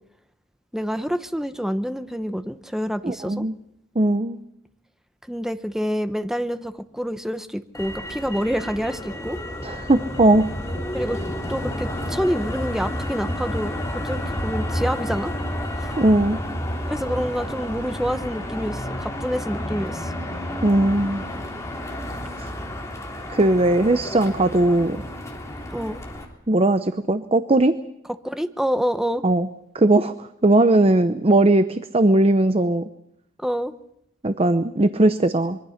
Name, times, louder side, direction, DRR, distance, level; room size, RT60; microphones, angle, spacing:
voice 1, 0.7-3.4 5.3-9.4 10.9-11.2 11.5-15.3 16.9-20.1 25.7-26.0 28.2-29.2 33.4-33.7, equal, ahead, 10 dB, 0.9 m, -27 dB
voice 2, 3.0-3.5 4.0-4.4 9.6-10.5 15.9-16.4 20.6-21.2 22.4-22.5 23.3-25.0 26.5-27.7 29.2-29.5 29.7-32.9 34.2-35.6, right 2 dB, 30° right, 11 dB, 0.7 m, -19 dB
Motor vehicle (road), 7.7-26.2, left 1 dB, 15° left, 3.8 m, -30 dB
25.0 x 23.0 x 5.8 m, 0.82 s
head